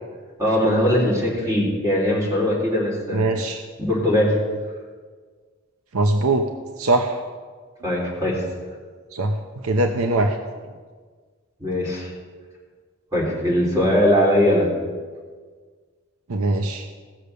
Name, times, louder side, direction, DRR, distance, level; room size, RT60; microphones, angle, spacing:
voice 1, 0.4-3.3 3.8-4.4 7.8-8.4 11.6-12.1 13.1-14.7, left 1 dB, 15° right, -4 dB, 3.6 m, -20 dB
voice 2, 3.1-3.6 5.9-6.5 6.8-7.2 9.1-10.4 16.3-16.9, right 2 dB, 85° right, 5 dB, 0.8 m, -21 dB
16.5 x 6.6 x 6.8 m, 1.5 s
head